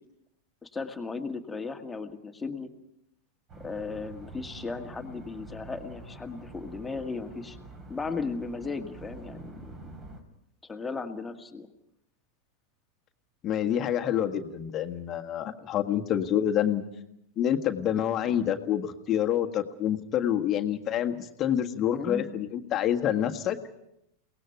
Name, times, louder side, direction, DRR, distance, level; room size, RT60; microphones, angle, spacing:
voice 1, 0.6-2.7 3.6-7.6 7.9-9.9 10.6-11.7 21.9-22.3, left 4 dB, 10° left, 5 dB, 2.0 m, -36 dB
sound 1, 3.5-10.2, right 2 dB, 30° right, 4.0 m, -46 dB
voice 2, 13.4-16.8 17.4-23.6, left 10 dB, 30° left, 6 dB, 1.6 m, -27 dB
30.0 x 18.5 x 5.9 m, 0.80 s
figure-of-eight pair, 90°, 0 cm